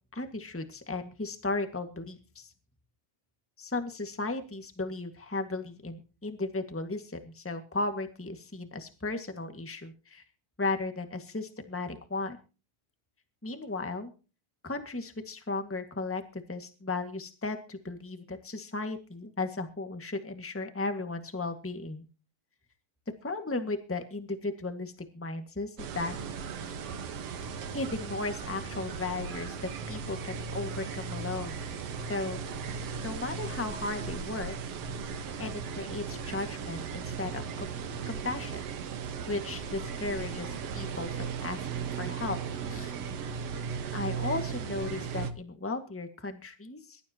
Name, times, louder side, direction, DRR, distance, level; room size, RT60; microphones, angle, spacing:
voice 1, 0.1-2.5 3.6-10.2 10.6-12.4 13.4-14.1 14.6-22.0 23.2-26.2 27.7-29.5 29.9-31.6 32.1-32.4 33.0-34.5 35.4-37.7 38.0-38.6 39.3-41.1 41.4-42.4 42.7-43.0 43.9-47.0, left 3 dB, 10° left, 7 dB, 0.6 m, -35 dB
sound 1, 25.8-45.3, right 6 dB, 55° right, 2.0 m, -37 dB
23.0 x 12.5 x 2.9 m, 0.34 s
omnidirectional pair, 3.8 m